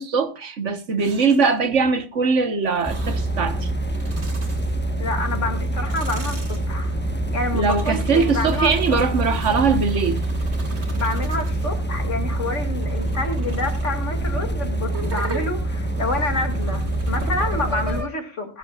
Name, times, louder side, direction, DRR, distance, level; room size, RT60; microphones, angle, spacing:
voice 1, 0.0-3.7 7.5-10.2, right 5 dB, 80° right, 1.7 m, -21 dB
sound 1, 1.0-1.6 2.6-3.4 3.8-5.1 5.6-11.8 12.4-18.1, right 2 dB, 65° right, 2.5 m, -39 dB
sound 2, 2.9-18.0, right 1 dB, 10° left, 1.2 m, -25 dB
voice 2, 5.0-6.9 7.3-9.0 10.9-18.6, left 2 dB, 85° left, 2.9 m, -28 dB
21.0 x 11.0 x 2.5 m
omnidirectional pair, 1.2 m